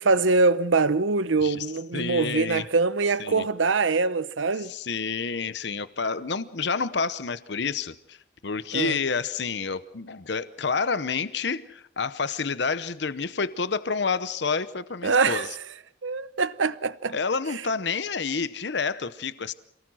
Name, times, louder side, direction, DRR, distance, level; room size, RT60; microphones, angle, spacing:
voice 1, 0.0-4.7 8.7-9.0 15.0-15.5 16.0-17.1, right 4 dB, 85° right, 0.8 m, -23 dB
voice 2, 1.9-2.7 3.2-3.4 4.6-8.2 8.4-15.5 17.1-19.5, left 5 dB, 65° left, 0.8 m, -29 dB
27.5 x 18.5 x 6.2 m
head